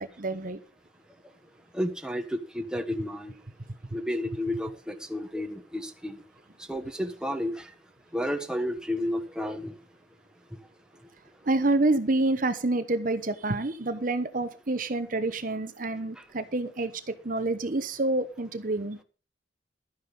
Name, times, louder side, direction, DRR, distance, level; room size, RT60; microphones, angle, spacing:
voice 1, 0.2-0.6 11.4-19.0, right 2 dB, 50° right, 1.0 m, -28 dB
voice 2, 1.7-2.2 2.5-3.4 3.9-6.2 6.7-7.6 8.1-9.7, left 1 dB, 5° right, 1.2 m, -31 dB
12.5 x 9.5 x 5.4 m
head